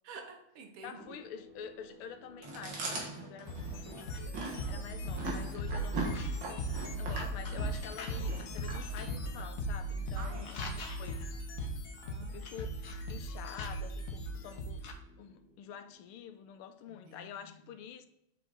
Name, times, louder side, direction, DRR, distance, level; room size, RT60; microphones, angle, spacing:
voice 1, 0.1-1.2 10.2-11.0 12.0-12.7 16.9-17.3, right 5 dB, 85° right, 2.0 m, -50 dB
voice 2, 0.8-4.2 4.7-6.2 6.7-11.3 12.3-12.7 13.1-14.9 15.2-18.1, left 8 dB, 85° left, 1.6 m, -48 dB
sound 1, 0.8-17.1, right 1 dB, 5° right, 2.4 m, -57 dB
Chewing mastication, 2.4-9.5, right 3 dB, 60° right, 2.3 m, -40 dB
sound 2, 3.5-14.9, equal, 50° left, 1.1 m, -38 dB
7.6 x 5.0 x 4.0 m
omnidirectional pair, 2.4 m